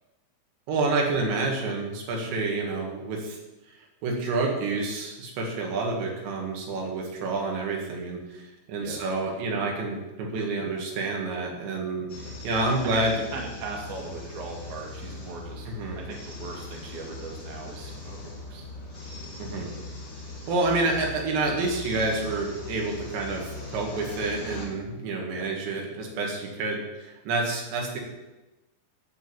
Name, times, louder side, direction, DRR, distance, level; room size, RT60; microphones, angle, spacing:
voice 1, 0.7-3.4 4.0-12.1 12.4-13.2 15.7-16.0 19.4-19.7 20.5-28.0, right 3 dB, 80° right, 0 dB, 4.3 m, -28 dB
sound 1, 12.1-24.7, left 2 dB, 30° left, 1.5 m, -40 dB
voice 2, 13.3-18.7 19.5-19.8 25.3-25.5, right 4 dB, 50° right, -1 dB, 3.0 m, -39 dB
13.0 x 5.0 x 8.7 m, 1.0 s
omnidirectional pair, 5.0 m